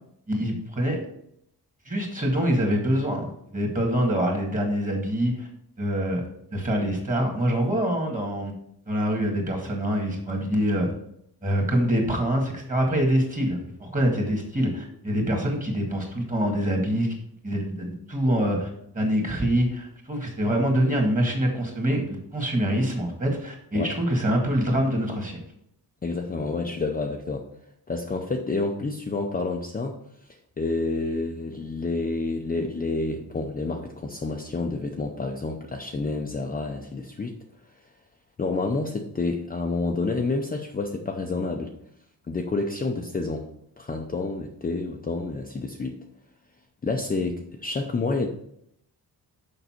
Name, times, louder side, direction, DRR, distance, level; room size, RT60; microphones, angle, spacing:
voice 1, 0.3-1.0 1.9-5.5 5.8-6.2 6.5-8.5 8.9-10.9 11.4-17.1 17.4-25.4, equal, 20° right, 1 dB, 1.9 m, -25 dB
voice 2, 26.0-27.5 27.9-30.0 30.6-37.3 38.4-41.7 42.3-43.5 43.8-46.0 46.8-48.3, left 3 dB, 20° left, 2 dB, 0.6 m, -29 dB
6.8 x 5.4 x 4.4 m, 0.73 s
wide cardioid pair, 130°, 40 cm